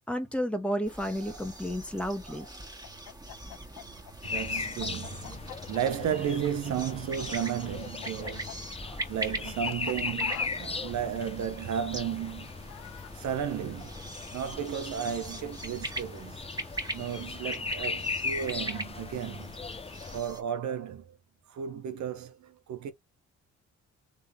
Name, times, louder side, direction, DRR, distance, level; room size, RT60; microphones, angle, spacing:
voice 1, 0.1-2.4, equal, 5° left, 1.6 m, -31 dB
sound 1, 0.8-20.4, right 1 dB, 15° right, 2.2 m, -42 dB
Chicken rooster, 2.8-7.2 7.5-13.1, left 14 dB, 75° left, 0.7 m, -45 dB
sound 2, 4.2-20.2, left 4 dB, 20° left, 0.7 m, -38 dB
voice 2, 4.2-5.4 5.7-12.5 13.2-13.9 14.3-16.4 16.9-19.5 20.1-21.0 21.5-22.9, right 8 dB, 70° right, 1.0 m, -34 dB
3.7 x 3.7 x 3.5 m
cardioid pair, 90°, 30 cm